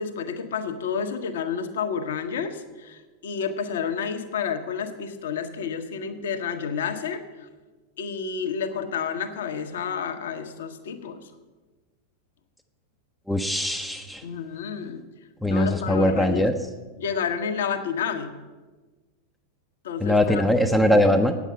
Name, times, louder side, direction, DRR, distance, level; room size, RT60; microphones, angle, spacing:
voice 1, 0.0-7.5 8.0-11.2 14.2-15.0 15.5-16.5 17.0-18.4 19.8-20.4 20.7-21.0, left 6 dB, 60° left, 7 dB, 1.0 m, -30 dB
voice 2, 13.3-14.2 15.4-16.5 20.0-21.3, left 1 dB, ahead, 4 dB, 0.6 m, -21 dB
9.1 x 7.2 x 8.9 m, 1.3 s
figure-of-eight pair, 90°, 0 cm